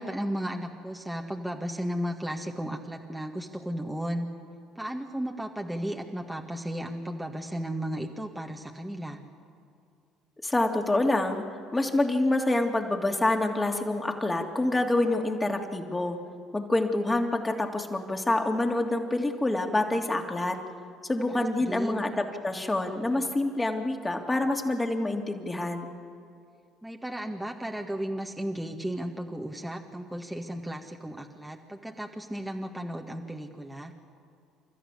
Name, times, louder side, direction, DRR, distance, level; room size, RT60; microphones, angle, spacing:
voice 1, 0.0-4.3 4.8-9.2 21.3-22.0 26.8-33.9, equal, 5° right, 1 dB, 1.9 m, -34 dB
voice 2, 10.4-11.4 11.7-16.2 16.5-20.6 21.0-25.9, left 2 dB, 15° left, 3 dB, 2.9 m, -27 dB
29.0 x 14.0 x 8.5 m, 2.3 s
hypercardioid pair, 60°, 0 cm